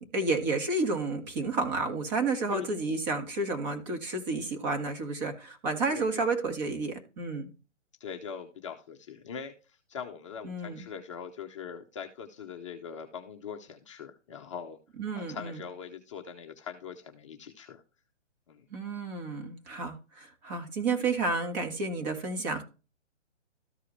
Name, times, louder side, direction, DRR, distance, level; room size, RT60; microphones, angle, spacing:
voice 1, 0.0-7.5 10.4-10.8 15.0-15.6 18.7-22.6, right 3 dB, 35° right, 5 dB, 1.8 m, -31 dB
voice 2, 5.9-6.3 8.0-14.8 15.1-17.8 18.5-18.7, left 7 dB, 25° left, 3 dB, 0.6 m, -42 dB
13.5 x 4.7 x 3.2 m, 0.32 s
hypercardioid pair, 150°, 36 cm